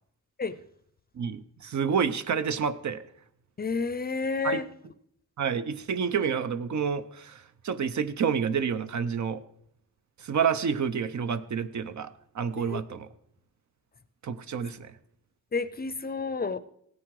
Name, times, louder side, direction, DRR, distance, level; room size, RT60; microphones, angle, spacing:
voice 1, 1.2-3.0 4.4-4.6 5.4-9.4 10.2-13.1 14.2-14.9, right 6 dB, 65° right, 12 dB, 0.8 m, -29 dB
voice 2, 3.6-4.7 12.6-12.8 15.5-16.6, left 4 dB, 30° left, 15 dB, 0.5 m, -30 dB
16.5 x 9.5 x 4.8 m, 0.73 s
wide cardioid pair, 140°, 32 cm